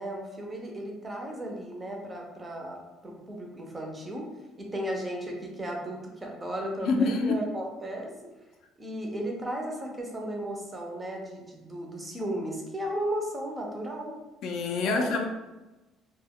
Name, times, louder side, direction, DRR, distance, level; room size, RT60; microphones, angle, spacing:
voice 1, 0.0-2.8 3.0-4.3 4.6-8.1 8.8-14.1 14.8-15.1, right 1 dB, 15° right, 0 dB, 0.4 m, -35 dB
voice 2, 6.8-7.4 14.4-15.2, left 3 dB, 55° left, 3 dB, 0.3 m, -26 dB
2.1 x 2.1 x 3.5 m, 1.1 s
cardioid pair, 170°, 0 cm